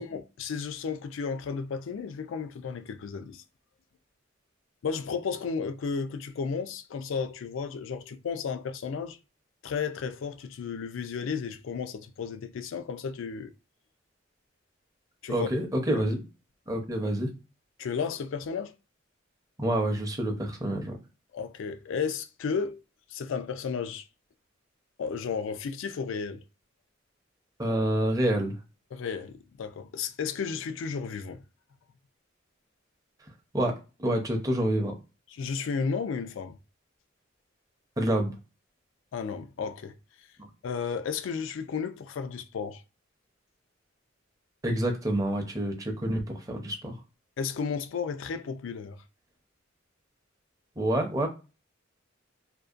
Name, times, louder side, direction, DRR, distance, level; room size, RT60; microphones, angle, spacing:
voice 1, 0.0-3.4 4.8-9.2 9.6-13.5 15.2-15.5 15.9-16.1 17.8-18.7 21.3-22.8 23.1-24.0 25.0-26.4 28.9-31.4 35.3-36.6 39.1-39.9 40.6-42.8 47.4-49.0, left 5 dB, 80° left, 0.4 m, -33 dB
voice 2, 15.3-16.2 16.7-17.3 19.6-21.0 27.6-28.5 33.5-33.7 34.0-34.9 38.0-38.3 44.6-46.2 46.5-46.9 50.8-51.3, right 1 dB, 20° right, 0.6 m, -27 dB
2.6 x 2.1 x 2.4 m
head